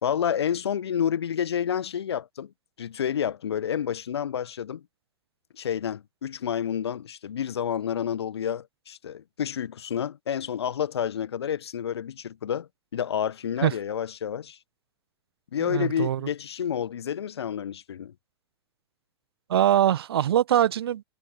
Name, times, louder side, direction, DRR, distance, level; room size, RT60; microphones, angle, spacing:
voice 1, 0.0-2.5 2.8-4.8 5.5-14.6 15.5-18.1, left 8 dB, 65° left, 1.2 m, -29 dB
voice 2, 15.7-16.2 19.5-21.0, right 11 dB, 60° right, 1.5 m, -22 dB
figure-of-eight pair, 95°, 14 cm